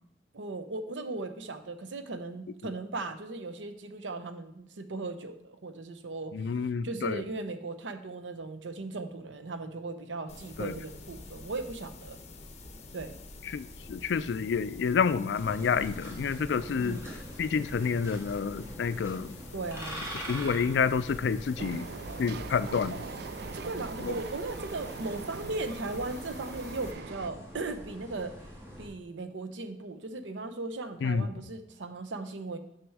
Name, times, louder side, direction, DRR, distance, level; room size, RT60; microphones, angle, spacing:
voice 1, 0.3-6.3 6.8-12.2 12.9-13.2 16.8-17.0 19.5-20.0 23.5-28.3 28.8-32.6, right 3 dB, 85° right, 9 dB, 0.7 m, -37 dB
voice 2, 6.3-7.2 10.6-10.7 13.5-17.0 17.4-19.4 20.3-21.9 22.2-23.0 24.0-24.1 31.0-31.3, left 6 dB, 65° left, 15 dB, 0.3 m, -29 dB
sound 1, 10.3-26.9, left 2 dB, 40° left, 0.8 m, -47 dB
sound 2, 15.3-28.9, equal, 15° right, 1.7 m, -44 dB
Train, 21.6-27.3, right 6 dB, 60° right, 0.3 m, -42 dB
6.2 x 6.1 x 4.7 m, 0.79 s
head